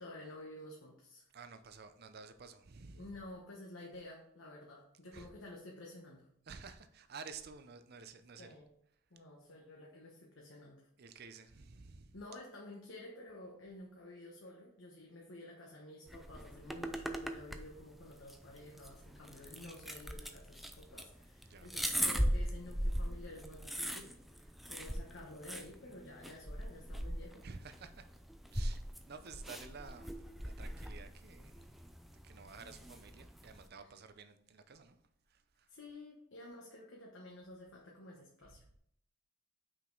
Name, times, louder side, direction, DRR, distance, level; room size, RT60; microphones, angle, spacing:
voice 1, 0.0-1.3 2.9-6.3 8.4-8.7 9.1-10.9 12.1-27.5 35.7-38.6, left 1 dB, 65° left, 1.1 m, -51 dB
voice 2, 1.3-3.1 5.1-5.3 6.5-8.5 11.0-12.1 21.4-21.7 27.4-28.1 28.5-31.8 32.2-35.0 35.3-35.7 38.4-38.6, right 5 dB, 50° right, 0.6 m, -52 dB
sound 1, 16.1-33.7, equal, ahead, 0.3 m, -40 dB
5.9 x 5.0 x 3.9 m
head